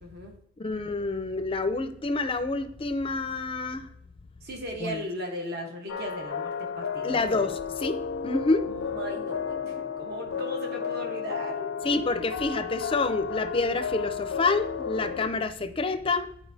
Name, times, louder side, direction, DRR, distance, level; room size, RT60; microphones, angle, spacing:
voice 1, 0.0-0.4 4.4-7.3 8.7-12.1, equal, 55° right, 2 dB, 1.2 m, -37 dB
voice 2, 0.6-3.9 4.8-5.0 7.0-8.7 11.8-16.3, left 3 dB, 30° left, 10 dB, 0.5 m, -28 dB
sound 1, 5.9-15.3, left 7 dB, 85° left, 0.5 m, -33 dB
11.0 x 4.6 x 2.7 m, 0.71 s
head